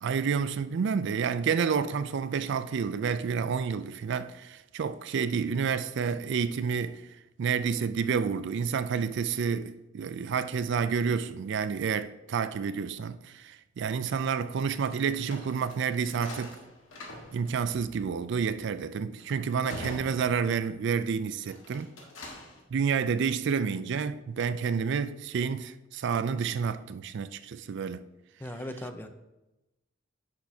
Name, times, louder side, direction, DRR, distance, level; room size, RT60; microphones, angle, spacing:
voice 1, 0.0-7.0 7.4-16.6 17.3-21.9 22.7-28.0, right 6 dB, 65° right, 0.4 m, -29 dB
sound 1, 14.9-20.9 21.4-22.6, left 1 dB, 85° left, 1.7 m, -45 dB
voice 2, 28.4-29.1, left 1 dB, 10° left, 0.5 m, -38 dB
10.0 x 6.3 x 2.8 m
head